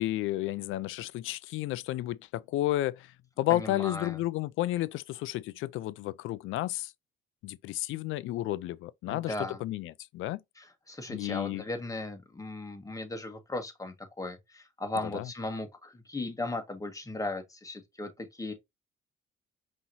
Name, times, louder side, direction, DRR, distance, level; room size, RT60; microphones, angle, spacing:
voice 1, 0.0-6.9 7.4-9.3 9.6-10.4 11.1-11.6 15.1-15.3, left 15 dB, 85° left, 0.4 m, -32 dB
voice 2, 3.5-4.2 9.1-9.6 10.6-18.5, left 2 dB, 15° left, 1.6 m, -37 dB
5.4 x 3.1 x 2.6 m
cardioid pair, 90°, 20 cm